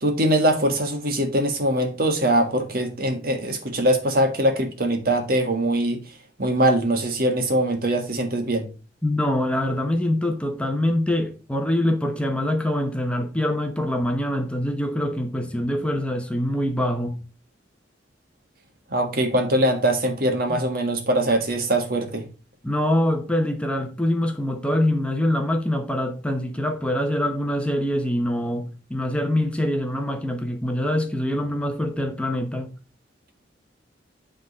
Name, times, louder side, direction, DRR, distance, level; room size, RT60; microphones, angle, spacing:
voice 1, 0.0-6.0 6.4-8.7 18.9-22.2, right 1 dB, 55° right, 1.6 m, -22 dB
voice 2, 9.0-17.2 22.6-32.7, left 1 dB, 5° left, 0.9 m, -24 dB
9.3 x 3.7 x 5.2 m
head